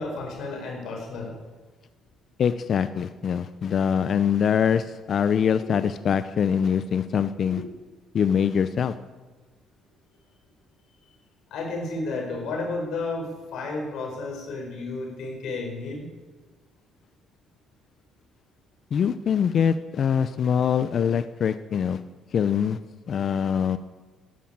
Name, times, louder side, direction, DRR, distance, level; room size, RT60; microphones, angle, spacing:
voice 1, 0.0-1.4 7.5-7.6 11.5-16.1, left 3 dB, 75° left, 1 dB, 5.0 m, -32 dB
voice 2, 2.4-7.6 8.1-8.9 18.9-22.0 22.3-22.8 23.1-23.8, left 7 dB, 55° left, 12 dB, 0.6 m, -23 dB
12.0 x 12.0 x 8.7 m, 1.3 s
cardioid pair, 100°, 0 cm